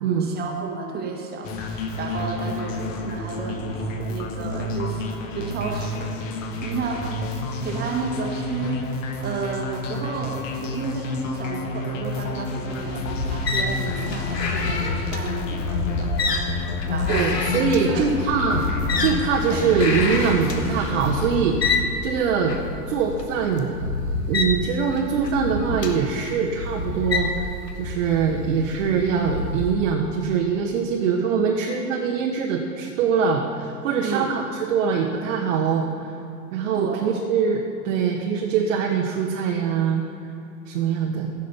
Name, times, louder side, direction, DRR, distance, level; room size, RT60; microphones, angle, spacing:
voice 1, 0.0-3.8 4.1-5.0 5.3-6.1 6.6-7.1 7.6-8.9 9.2-16.1 16.9-17.3 17.7-18.1 19.5-19.6 34.0-34.3 36.7-37.0, right 5 dB, 20° right, 1 dB, 1.5 m, -32 dB
sound 1, 1.4-21.4, left 3 dB, 50° left, 1.6 m, -30 dB
sound 2, 12.7-29.7, left 3 dB, 85° left, 1.3 m, -28 dB
voice 2, 17.1-18.6 19.0-22.5 22.9-23.7 24.3-27.5 27.8-36.1 36.5-40.0 40.7-41.3, right 6 dB, 50° right, 1 dB, 1.3 m, -23 dB
15.5 x 6.6 x 5.5 m, 2.8 s
figure-of-eight pair, 100°, 48 cm